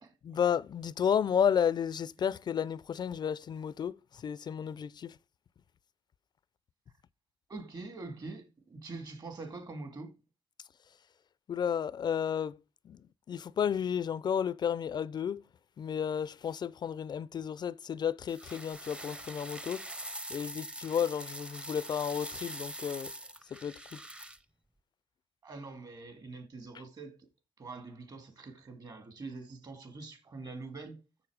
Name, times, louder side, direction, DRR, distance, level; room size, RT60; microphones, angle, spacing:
voice 1, 0.2-4.0 4.2-5.1 11.5-12.6 12.9-13.0 13.3-15.4 15.8-19.8 20.3-23.1 23.5-24.0, left 8 dB, 50° left, 0.4 m, -32 dB
voice 2, 7.5-10.1 25.4-27.1 27.6-31.0, right 3 dB, 45° right, 2.3 m, -44 dB
sound 1, 18.3-24.4, right 1 dB, 10° right, 0.6 m, -43 dB
7.1 x 6.9 x 4.9 m
cardioid pair, 100°, 10 cm